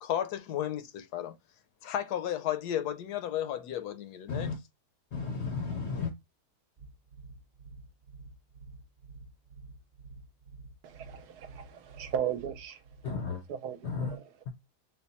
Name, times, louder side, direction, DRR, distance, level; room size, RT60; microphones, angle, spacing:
voice 1, 0.0-1.4 1.8-4.5, left 10 dB, 75° left, 1.1 m, -33 dB
voice 2, 5.1-6.1 13.0-13.4 13.8-14.2 14.5-14.6, left 5 dB, 60° left, 0.7 m, -33 dB
sound 1, 6.8-13.1, right 3 dB, 40° right, 0.7 m, -50 dB
voice 3, 10.8-12.8 13.5-14.3, right 9 dB, 75° right, 1.1 m, -36 dB
3.5 x 2.2 x 4.0 m
omnidirectional pair, 1.8 m